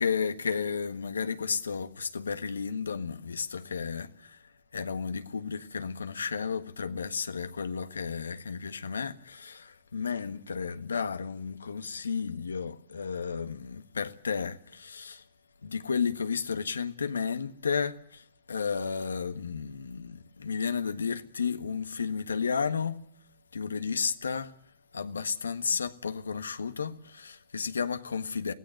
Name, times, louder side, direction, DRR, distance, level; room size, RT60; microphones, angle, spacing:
voice 1, 0.0-4.4 4.7-15.2 15.6-23.0 23.5-24.5 24.9-28.5, left 6 dB, 85° left, 1.5 m, -33 dB
23.5 x 17.0 x 7.7 m
hypercardioid pair, 120°, 0 cm